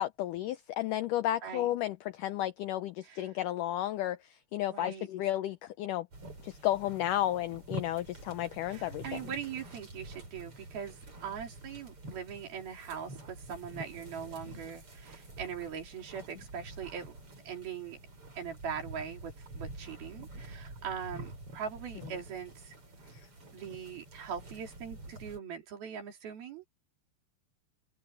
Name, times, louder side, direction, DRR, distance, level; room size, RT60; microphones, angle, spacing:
voice 1, 0.0-6.1 6.4-9.2, left 13 dB, 85° left, 1.8 m, -33 dB
voice 2, 4.7-5.1 8.7-17.2 17.5-18.0 18.4-22.8 23.5-26.7, right 7 dB, 70° right, 5.2 m, -41 dB
sound 1, 6.1-25.4, right 1 dB, 35° right, 7.4 m, -47 dB
omnidirectional pair, 4.6 m